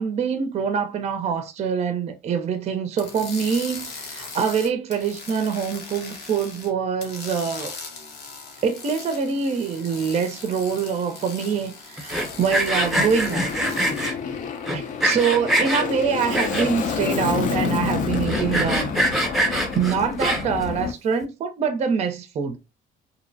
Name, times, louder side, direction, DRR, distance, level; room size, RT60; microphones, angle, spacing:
voice 1, 0.0-7.7 8.6-13.5 14.7-18.9 19.4-22.6, right 6 dB, 40° right, 0.5 m, -25 dB
sound 1, 3.0-6.7 7.0-14.1, left 4 dB, 80° left, 0.8 m, -39 dB
Sawing, 12.0-14.1 14.7-15.8 16.3-16.9 17.4-17.5 17.6-17.7 18.1-20.6, right 1 dB, ahead, 0.6 m, -23 dB
Aircraft, 12.1-20.9, left 6 dB, 50° left, 0.5 m, -29 dB
2.6 x 2.0 x 2.6 m
cardioid pair, 110°, 17 cm